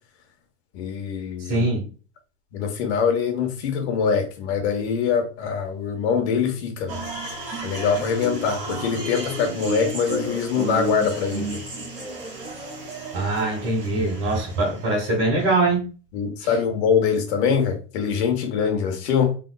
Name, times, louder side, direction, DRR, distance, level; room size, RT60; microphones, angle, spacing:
voice 1, 0.7-1.7 2.5-7.0 7.6-11.6 16.1-19.4, left 6 dB, 85° left, 1.2 m, -23 dB
voice 2, 1.4-1.9 13.1-15.9 16.4-16.5, right 2 dB, 40° right, 1.6 m, -23 dB
sound 1, 6.9-15.0, right 2 dB, 20° right, 1.2 m, -32 dB
3.7 x 3.5 x 2.3 m
supercardioid pair, 160°, 32 cm